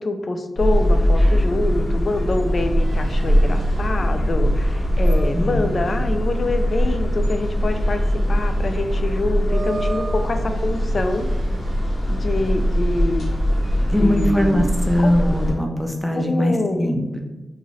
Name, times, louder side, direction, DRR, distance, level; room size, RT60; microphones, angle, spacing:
voice 1, 0.0-11.3 12.1-13.3 14.0-14.7 15.0-15.1 16.1-16.9, left 2 dB, 55° left, 6 dB, 0.3 m, -25 dB
sound 1, 0.6-15.5, equal, 85° left, 1.2 m, -21 dB
sound 2, 1.7-14.5, right 2 dB, 80° right, 0.3 m, -39 dB
voice 2, 5.3-5.7 13.8-17.2, equal, ahead, 2 dB, 0.5 m, -21 dB
2.5 x 2.5 x 3.1 m, 1.1 s
cardioid pair, 60°, 0 cm